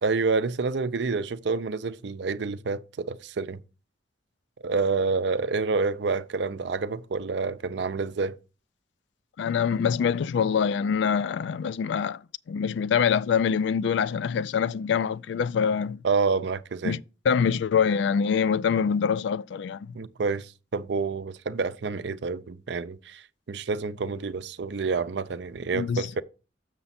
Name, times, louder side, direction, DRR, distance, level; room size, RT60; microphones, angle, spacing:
voice 1, 0.0-3.6 4.6-8.4 16.0-17.0 19.9-26.2, right 4 dB, 65° right, 0.5 m, -28 dB
voice 2, 9.4-12.2 12.5-16.0 16.8-17.0 17.3-19.8 25.7-26.2, left 6 dB, 70° left, 0.3 m, -25 dB
6.8 x 6.6 x 4.2 m
head